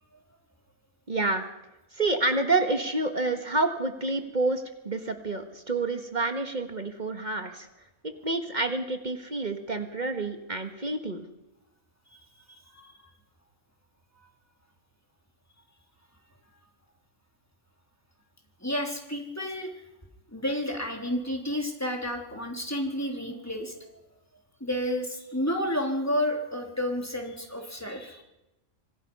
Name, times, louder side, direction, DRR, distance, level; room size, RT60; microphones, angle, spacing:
voice 1, 1.1-1.4 1.9-7.7 8.2-11.2, right 2 dB, 35° right, 6 dB, 1.7 m, -28 dB
voice 2, 12.5-12.9 14.2-14.3 18.6-19.7 20.3-23.9 24.6-28.2, left 1 dB, 10° left, 1 dB, 3.5 m, -31 dB
26.0 x 18.0 x 5.6 m, 0.96 s
omnidirectional pair, 1.3 m